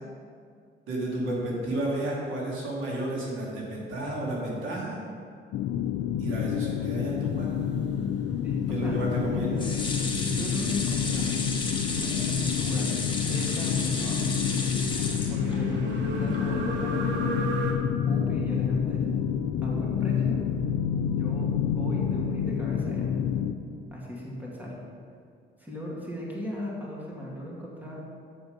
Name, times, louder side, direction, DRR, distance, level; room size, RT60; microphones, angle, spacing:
voice 1, 0.9-5.0 6.2-7.6 8.7-9.5, right 1 dB, 85° right, -4 dB, 2.3 m, -31 dB
sound 1, 5.5-23.5, left 8 dB, 80° left, 0.5 m, -28 dB
sound 2, 7.3-17.7, right 3 dB, 65° right, 1.2 m, -38 dB
voice 2, 8.4-9.0 9.4-9.7 10.1-11.3 12.0-12.9 13.3-14.3 15.3-17.4 18.1-19.1 19.6-20.4 21.1-23.1 23.9-24.7 25.6-28.0, equal, 10° right, -4 dB, 2.3 m, -37 dB
sound 3, 9.6-15.9 16.3-16.4 16.7-16.8, left 3 dB, 25° left, 1.5 m, -33 dB
7.2 x 7.0 x 5.2 m, 2.2 s
cardioid pair, 90°, 20 cm